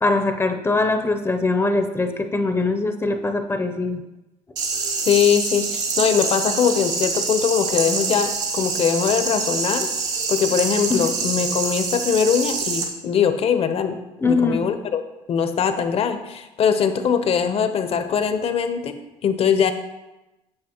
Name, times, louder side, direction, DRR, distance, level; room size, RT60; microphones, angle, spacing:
voice 1, 0.0-4.0 10.9-11.1 14.2-14.7, left 3 dB, 20° left, 7 dB, 0.6 m, -22 dB
sound 1, 4.6-12.8, right 4 dB, 80° right, 1.3 m, -25 dB
voice 2, 5.1-9.9 10.3-14.0 14.2-15.0 15.3-19.7, left 7 dB, 50° left, 9 dB, 0.7 m, -21 dB
8.8 x 5.8 x 2.9 m, 1.0 s
supercardioid pair, 80°, 13 cm